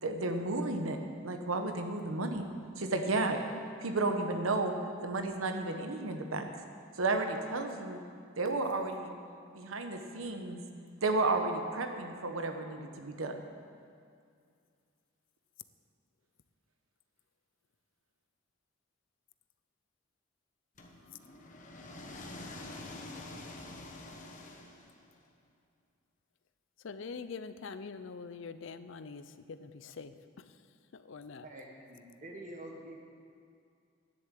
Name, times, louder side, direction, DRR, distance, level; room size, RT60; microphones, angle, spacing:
voice 1, 0.0-1.0 1.2-2.5 2.8-3.4 3.8-4.7 5.0-6.5 6.9-8.0 8.4-9.1 9.5-10.6 11.0-13.4, right 2 dB, 80° right, 5 dB, 1.1 m, -32 dB
sound 1, 20.8-25.2, left 2 dB, 40° left, 1.1 m, -46 dB
voice 2, 26.8-30.6 30.9-31.5, left 5 dB, 65° left, 12 dB, 0.5 m, -44 dB
voice 3, 31.4-33.0, right 1 dB, 40° right, 0 dB, 1.4 m, -47 dB
10.5 x 7.1 x 8.3 m, 2.3 s
head